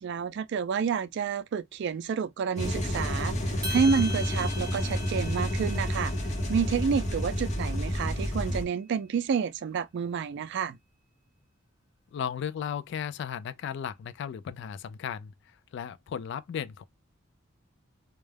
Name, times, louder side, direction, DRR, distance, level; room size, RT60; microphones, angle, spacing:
voice 1, 0.0-6.1 6.5-10.8, right 6 dB, 60° right, 0.3 m, -29 dB
sound 1, 2.6-8.6, equal, 35° left, 0.7 m, -30 dB
sound 2, 3.6-8.0, left 1 dB, 20° right, 0.7 m, -41 dB
voice 2, 12.1-15.3 15.7-16.8, left 8 dB, 60° left, 0.3 m, -35 dB
2.3 x 2.0 x 3.1 m
head